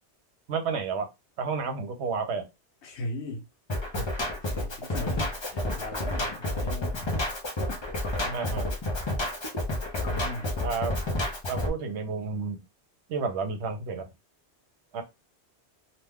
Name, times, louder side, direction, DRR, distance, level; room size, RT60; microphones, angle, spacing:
voice 1, 0.5-1.1 1.4-2.5 3.9-4.1 8.3-8.7 10.6-11.0 11.5-12.6 13.1-14.1 14.9-15.0, right 5 dB, 80° right, 1.0 m, -31 dB
voice 2, 2.8-3.5 4.3-7.1 8.2-8.7 10.0-10.6, left 1 dB, 80° left, 1.1 m, -38 dB
Drum kit, 3.7-11.7, left 1 dB, 30° left, 0.5 m, -30 dB
2.7 x 2.2 x 3.4 m
omnidirectional pair, 1.1 m